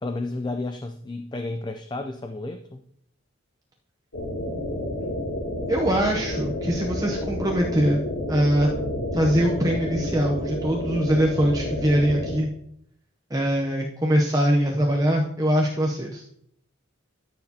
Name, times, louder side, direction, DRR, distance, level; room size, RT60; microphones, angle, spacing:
voice 1, 0.0-2.8, left 2 dB, 20° left, 7 dB, 0.4 m, -32 dB
sound 1, 4.1-12.3, left 1 dB, 80° left, 2.9 m, -30 dB
voice 2, 5.7-8.7 9.1-12.5 13.3-16.2, equal, 15° right, -1 dB, 0.7 m, -22 dB
13.5 x 6.6 x 2.8 m, 0.68 s
head